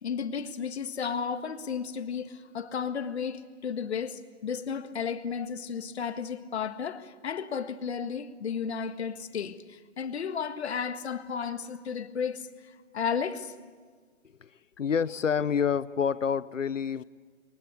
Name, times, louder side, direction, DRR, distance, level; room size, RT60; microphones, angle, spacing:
voice 1, 0.0-13.5, left 6 dB, 60° left, 1.8 m, -33 dB
voice 2, 14.8-17.0, left 7 dB, 85° left, 1.0 m, -27 dB
28.0 x 23.0 x 8.6 m
hypercardioid pair, 145°, 37 cm